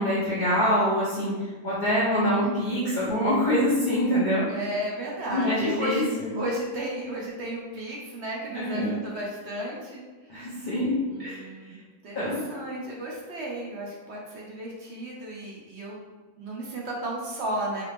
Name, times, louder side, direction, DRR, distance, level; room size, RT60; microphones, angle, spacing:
voice 1, 0.0-4.4 5.3-6.3 8.5-8.9 10.3-11.4 12.1-12.4, equal, 40° left, -9 dB, 0.8 m, -25 dB
voice 2, 4.5-10.7 11.0-11.8 12.0-16.1 16.4-17.8, right 1 dB, 55° right, -3 dB, 0.9 m, -34 dB
3.3 x 2.8 x 3.3 m, 1.3 s
omnidirectional pair, 1.6 m